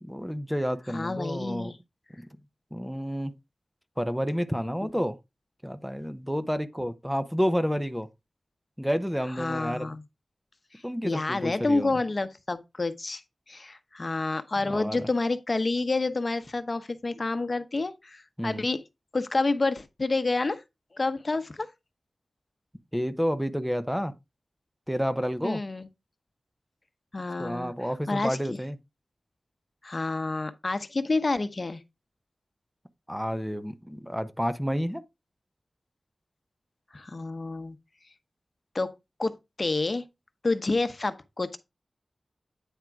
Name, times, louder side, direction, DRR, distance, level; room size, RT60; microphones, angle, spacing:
voice 1, 0.0-1.7 2.2-2.3 2.7-3.3 4.0-5.2 5.6-8.1 8.8-10.0 10.8-12.0 14.6-15.1 18.4-18.6 22.9-24.1 24.9-25.6 27.4-28.8 33.1-35.0, equal, ahead, 0.8 m, -30 dB
voice 2, 0.9-1.8 9.4-10.0 11.0-13.2 13.5-18.8 19.1-20.6 20.9-21.7 25.4-25.9 27.1-27.7 28.1-28.6 29.8-31.8 36.9-37.8 38.7-38.9 39.2-39.3 39.6-40.0 40.4-41.6, left 3 dB, 50° left, 0.9 m, -28 dB
9.1 x 3.7 x 4.6 m
wide cardioid pair, 55°, 0 cm